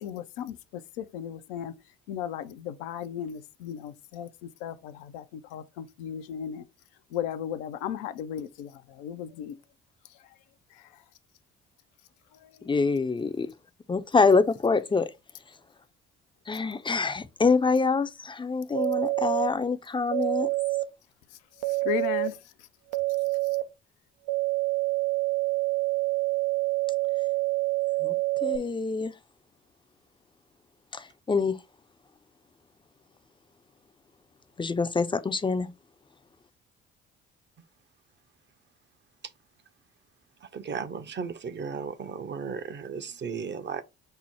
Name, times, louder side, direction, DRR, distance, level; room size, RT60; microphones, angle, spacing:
voice 1, 0.0-1.7 2.1-6.6 7.1-9.6 12.3-12.7 21.7-22.4, left 9 dB, 75° left, 0.5 m, -36 dB
voice 2, 12.7-13.5 13.9-15.1 16.5-20.5 28.0-28.1 28.4-29.1 30.9-31.6 34.6-35.7, left 4 dB, 15° left, 0.5 m, -25 dB
sound 1, 18.7-19.5 20.1-20.9 21.6-22.3 22.9-23.6 24.3-28.6, right 21 dB, 80° right, 0.5 m, -27 dB
voice 3, 40.5-43.8, right 6 dB, 35° right, 0.6 m, -35 dB
5.5 x 2.0 x 4.3 m
hypercardioid pair, 50°, 32 cm